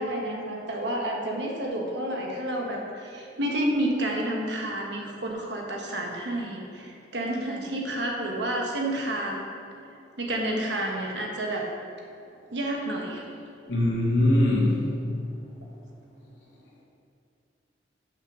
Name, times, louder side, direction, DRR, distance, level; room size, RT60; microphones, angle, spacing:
voice 1, 0.0-9.5 10.2-11.6 12.5-13.2, right 1 dB, 70° right, 0 dB, 1.2 m, -30 dB
voice 2, 13.7-14.7, left 1 dB, 75° left, -5 dB, 2.1 m, -21 dB
6.6 x 6.1 x 6.1 m, 2.6 s
head